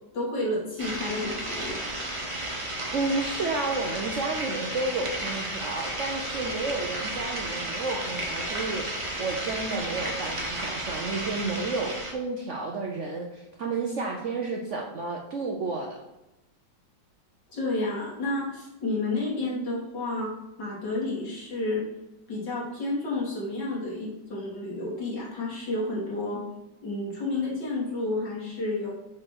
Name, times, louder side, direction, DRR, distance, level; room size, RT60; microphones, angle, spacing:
voice 1, 0.1-1.8 17.5-20.3 20.6-21.8 22.3-26.4 26.8-28.9, left 2 dB, 70° left, -5 dB, 3.0 m, -30 dB
sound 1, 0.8-12.1, right 1 dB, 20° right, 1.1 m, -33 dB
voice 2, 2.9-16.0, right 3 dB, 60° right, 1 dB, 0.8 m, -31 dB
6.8 x 3.7 x 6.1 m, 0.95 s
omnidirectional pair, 2.0 m